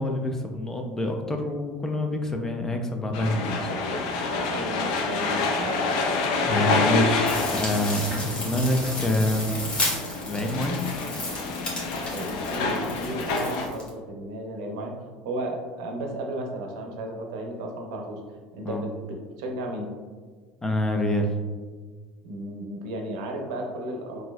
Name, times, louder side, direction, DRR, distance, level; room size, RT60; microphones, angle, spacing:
voice 1, 0.0-4.3 6.4-9.6 10.2-10.8 18.6-18.8 20.6-21.3, left 1 dB, 15° left, 3 dB, 0.4 m, -27 dB
sound 1, 3.1-13.7, left 3 dB, 80° left, 0.4 m, -28 dB
voice 2, 4.5-5.8 12.1-14.9 15.2-18.2 18.5-18.9 19.4-19.9 22.2-24.2, right 1 dB, 85° right, 2 dB, 0.6 m, -33 dB
sound 2, 7.3-13.9, left 2 dB, 35° left, 1.1 m, -33 dB
4.0 x 2.6 x 2.3 m, 1.5 s
supercardioid pair, 105°, 3 cm